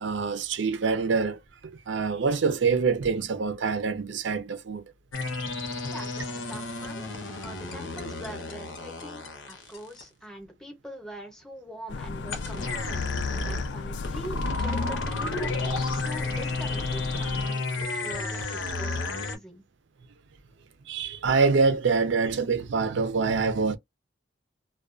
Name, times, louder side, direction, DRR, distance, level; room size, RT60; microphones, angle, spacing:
voice 1, 0.0-4.8 20.9-23.8, right 4 dB, 75° right, 0.5 m, -25 dB
sound 1, 5.1-10.0 12.3-19.3, left 3 dB, 85° left, 0.8 m, -32 dB
voice 2, 5.9-12.7 13.1-19.6, equal, 5° left, 0.7 m, -43 dB
sound 2, 11.9-17.5, left 3 dB, 65° left, 0.3 m, -36 dB
2.3 x 2.2 x 2.4 m
head